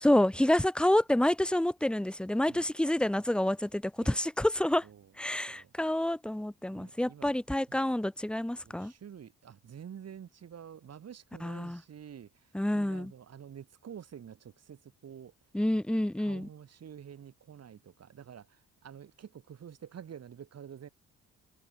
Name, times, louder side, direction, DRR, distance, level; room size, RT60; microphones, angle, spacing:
voice 1, 0.0-4.9 5.2-8.9 11.4-11.8 12.5-13.1 15.5-16.5, left 1 dB, 5° left, 0.8 m, -28 dB
voice 2, 6.7-7.3 7.7-7.8 8.6-15.3 16.2-20.9, right 8 dB, 55° right, 7.2 m, -49 dB
cardioid pair, 90°, 30 cm